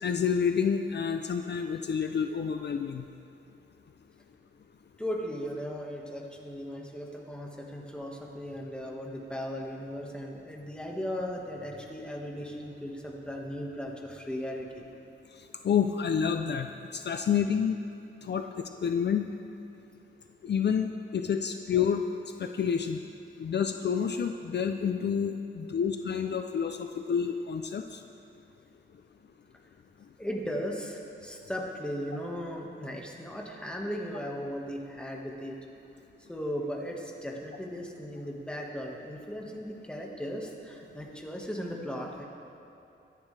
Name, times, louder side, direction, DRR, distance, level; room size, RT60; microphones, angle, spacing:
voice 1, 0.0-3.1 15.6-17.8 18.2-19.3 20.4-22.1 22.4-23.0 23.4-28.0, left 7 dB, 55° left, 6 dB, 0.5 m, -29 dB
voice 2, 5.0-14.9 17.2-17.3 30.2-35.6 36.3-42.2, equal, 5° left, -1 dB, 1.6 m, -37 dB
23.0 x 10.5 x 3.3 m, 2.7 s
wide cardioid pair, 150°, 21 cm